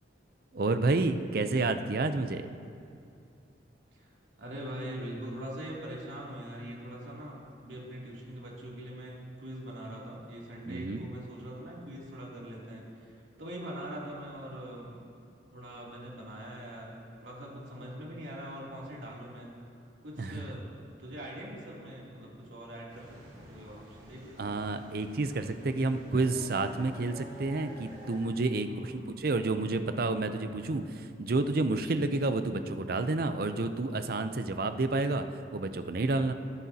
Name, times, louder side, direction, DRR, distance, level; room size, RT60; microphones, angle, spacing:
voice 1, 0.5-2.5 10.7-11.1 20.2-20.4 24.4-35.2 35.5-36.3, right 3 dB, 55° right, 9 dB, 0.5 m, -30 dB
voice 2, 4.4-15.1 15.5-19.6 20.0-24.6 28.6-29.3, equal, 90° right, -5 dB, 2.9 m, -43 dB
sound 1, 22.9-28.2, right 1 dB, 25° right, 2.4 m, -50 dB
19.5 x 9.8 x 2.8 m, 2.4 s
head